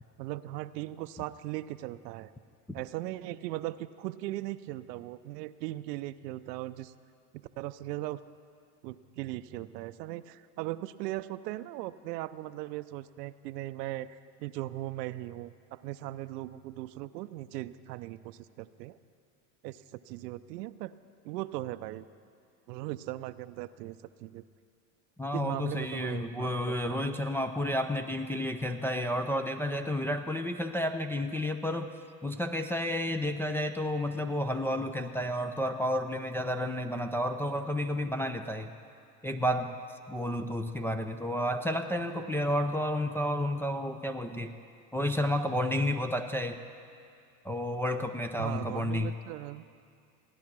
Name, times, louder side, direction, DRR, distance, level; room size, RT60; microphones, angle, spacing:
voice 1, 0.2-2.3 2.7-6.9 7.6-8.2 8.8-19.0 19.6-20.9 21.2-22.1 22.7-24.4 25.3-27.1 48.4-49.6, right 16 dB, 80° right, 14 dB, 0.6 m, -38 dB
voice 2, 25.2-31.9 32.2-38.7 39.2-39.8 40.1-44.5 44.9-46.6 47.4-49.1, left 1 dB, 5° left, 3 dB, 0.4 m, -31 dB
16.5 x 10.5 x 6.0 m, 2.3 s
hypercardioid pair, 90°, 48 cm